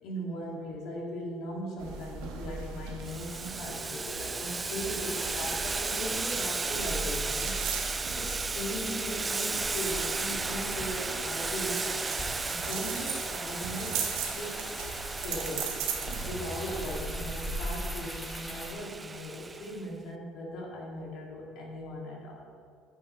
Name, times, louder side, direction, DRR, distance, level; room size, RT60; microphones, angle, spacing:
voice 1, 0.0-11.9 12.2-14.0 14.3-14.8 15.1-15.8 16.2-22.5, equal, 65° left, -2 dB, 2.7 m, -39 dB
sound 1, 1.8-17.4, right 5 dB, 75° right, 1.2 m, -39 dB
Boiling, 3.0-19.8, right 4 dB, 25° right, 0.4 m, -35 dB
sound 2, 8.9-18.7, equal, 5° left, 1.6 m, -40 dB
11.0 x 8.9 x 3.4 m, 2.2 s
hypercardioid pair, 75°, 0 cm